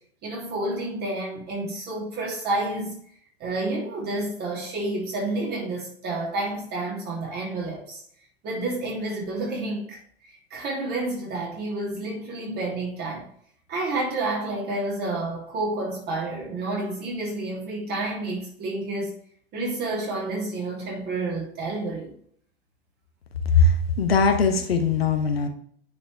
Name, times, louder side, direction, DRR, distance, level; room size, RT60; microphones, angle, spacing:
voice 1, 0.2-3.0 3.4-8.0 8.4-13.3 13.7-19.1 19.5-22.1, right 2 dB, 30° right, 2.8 m, -30 dB
voice 2, 23.5-25.5, left 4 dB, 70° left, 1.0 m, -20 dB
9.5 x 4.4 x 3.4 m
figure-of-eight pair, 95°, 32 cm